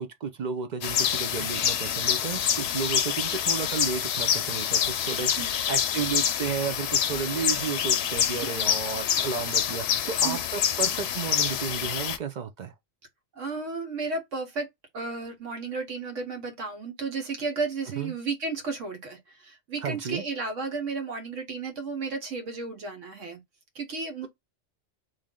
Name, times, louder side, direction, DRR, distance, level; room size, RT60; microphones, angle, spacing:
voice 1, 0.0-12.7 18.0-18.1 19.8-20.2, right 6 dB, 60° right, 0.4 m, -33 dB
sound 1, 0.8-12.2, left 9 dB, 65° left, 0.7 m, -26 dB
voice 2, 10.1-10.4 13.3-14.7 14.9-23.4 23.7-24.3, right 4 dB, 90° right, 1.4 m, -33 dB
3.2 x 2.6 x 3.6 m
omnidirectional pair, 1.3 m